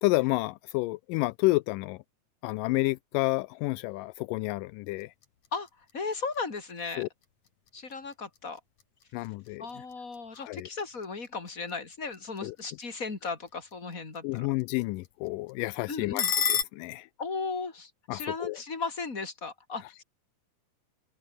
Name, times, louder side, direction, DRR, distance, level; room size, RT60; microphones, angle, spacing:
voice 1, 0.0-2.0 2.4-5.1 7.0-7.1 9.1-9.8 10.3-10.7 12.4-12.6 14.2-17.1 18.1-18.6, left 21 dB, 85° left, 2.2 m, -30 dB
sound 1, 4.9-16.6, left 8 dB, 60° left, 3.8 m, -38 dB
voice 2, 5.9-7.0 7.7-8.6 9.6-14.5 15.9-16.3 17.2-20.0, left 4 dB, 25° left, 3.8 m, -36 dB
omnidirectional pair, 3.9 m